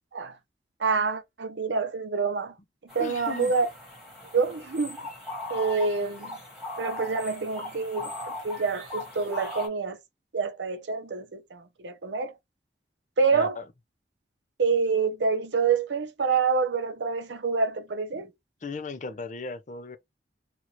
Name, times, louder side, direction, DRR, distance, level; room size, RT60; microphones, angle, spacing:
voice 1, 0.8-2.5 2.9-3.7 4.3-5.0 5.5-6.4 6.8-10.0 10.3-12.3 13.2-13.6 14.6-18.3, right 5 dB, 85° right, 0.7 m, -27 dB
sound 1, 2.9-9.7, left 2 dB, 5° right, 1.5 m, -39 dB
voice 2, 3.0-3.5 13.3-13.6 18.1-18.2 18.6-20.0, left 3 dB, 40° left, 0.5 m, -36 dB
2.9 x 2.5 x 2.9 m
head